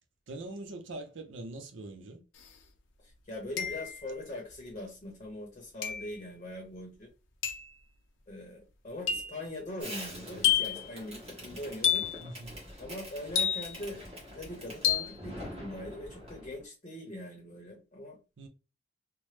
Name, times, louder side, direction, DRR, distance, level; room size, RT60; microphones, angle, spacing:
voice 1, 0.3-2.2 12.2-12.6 18.4-18.5, right 2 dB, 70° right, 0.6 m, -42 dB
sound 1, 2.4-2.5 3.6-4.1 5.8-6.2 7.4-7.7 9.1-9.4 10.4-10.9 11.8-12.2 13.4-13.9 14.8-15.2, left 9 dB, 70° left, 0.6 m, -29 dB
voice 2, 3.0-7.1 8.3-12.0 12.8-18.2, left 1 dB, 30° left, 0.8 m, -42 dB
Fireworks, 9.8-16.6, equal, 30° right, 1.3 m, -45 dB
3.0 x 2.0 x 3.2 m
head